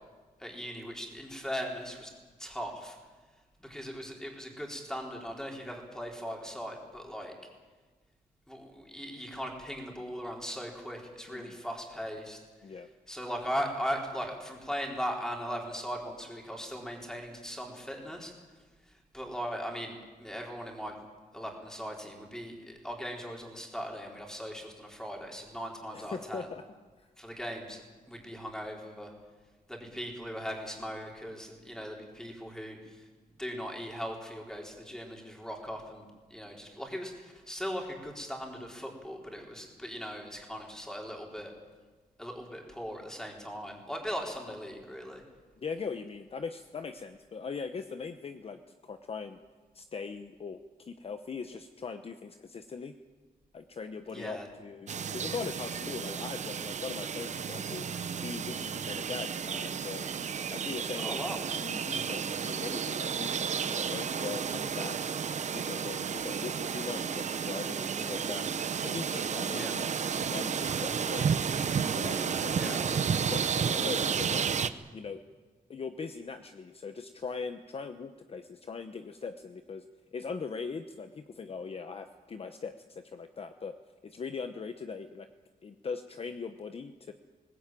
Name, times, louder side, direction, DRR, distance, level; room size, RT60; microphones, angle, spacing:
voice 1, 0.4-2.1 2.4-3.0 3.6-7.3 8.5-12.4 13.1-18.3 18.9-21.0 21.3-26.5 27.2-27.8 28.1-29.1 29.7-33.1 33.4-41.5 42.2-45.2 54.1-54.5 61.0-61.4 69.5-69.8 72.5-72.9, equal, 5° left, 0 dB, 4.1 m, -39 dB
voice 2, 25.9-26.6 27.0-27.1 45.6-49.4 49.7-53.0 53.5-60.1 60.5-61.2 61.6-65.0 65.5-68.5 68.8-71.3 71.9-74.5 74.9-75.2 75.7-79.8 80.1-83.8 84.0-85.3 85.6-87.1, left 5 dB, 40° left, 8 dB, 0.9 m, -40 dB
sound 1, 54.9-74.7, right 7 dB, 50° right, 0.9 m, -32 dB
20.5 x 19.0 x 9.1 m, 1.4 s
wide cardioid pair, 150°, 15 cm